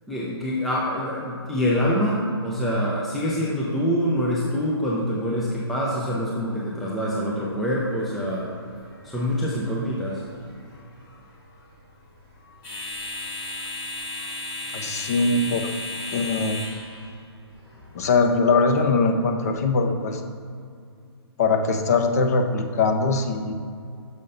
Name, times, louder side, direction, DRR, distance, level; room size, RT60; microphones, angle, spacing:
voice 1, 0.1-8.5 9.0-10.2, equal, ahead, -6 dB, 0.4 m, -25 dB
sound 1, 7.5-18.8, left 2 dB, 20° left, 1.5 m, -37 dB
voice 2, 14.7-15.7 16.1-16.6 17.9-20.2 21.4-23.5, left 3 dB, 35° left, 5 dB, 0.7 m, -21 dB
6.5 x 5.5 x 5.2 m, 2.3 s
hypercardioid pair, 165°, 14 cm